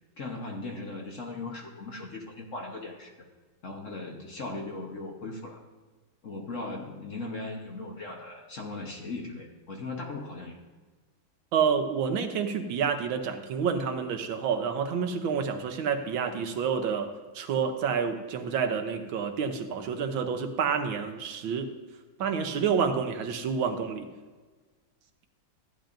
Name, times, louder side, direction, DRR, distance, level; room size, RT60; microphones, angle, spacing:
voice 1, 0.2-3.1 3.6-5.6 6.2-10.6, left 2 dB, 45° left, 0 dB, 1.1 m, -38 dB
voice 2, 11.5-21.7 22.2-24.1, right 6 dB, 75° right, 7 dB, 1.6 m, -29 dB
14.0 x 10.0 x 2.6 m, 1.3 s
omnidirectional pair, 2.2 m